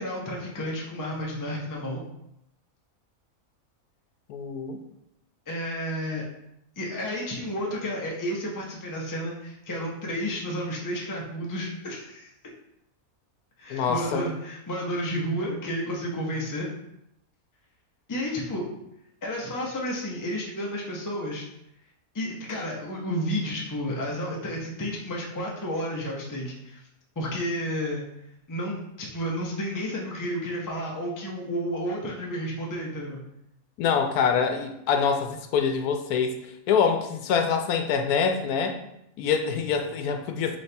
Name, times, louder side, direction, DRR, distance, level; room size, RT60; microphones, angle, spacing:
voice 1, 0.0-2.0 5.5-6.2 6.8-12.3 13.6-16.7 18.1-18.7 19.2-21.4 22.1-26.8 27.2-28.0 28.5-33.2, equal, 20° left, -2 dB, 0.5 m, -31 dB
voice 2, 4.3-4.8 13.7-14.3 33.8-38.8 39.2-40.6, left 6 dB, 90° left, 6 dB, 1.1 m, -25 dB
4.2 x 3.1 x 3.3 m, 0.81 s
omnidirectional pair, 1.5 m